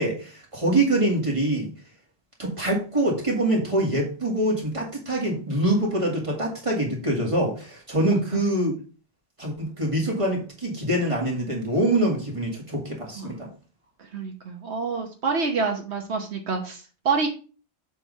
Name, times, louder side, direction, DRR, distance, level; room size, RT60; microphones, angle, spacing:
voice 1, 0.0-1.7 2.4-8.7 9.4-13.5, right 1 dB, 30° right, -2 dB, 2.3 m, -24 dB
voice 2, 14.1-17.3, right 4 dB, 75° right, 3 dB, 1.3 m, -27 dB
7.4 x 3.6 x 5.4 m, 0.37 s
omnidirectional pair, 1.1 m